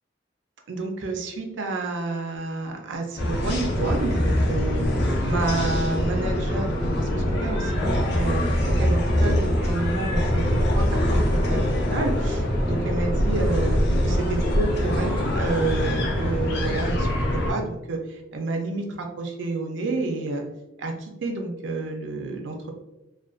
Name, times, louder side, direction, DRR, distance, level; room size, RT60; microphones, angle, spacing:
voice 1, 0.7-4.8 5.2-8.4 8.7-20.4 20.8-22.7, right 3 dB, 70° right, 3 dB, 0.4 m, -29 dB
sound 1, 3.2-17.5, equal, 60° left, 0.5 m, -23 dB
2.4 x 2.2 x 2.3 m, 0.95 s
head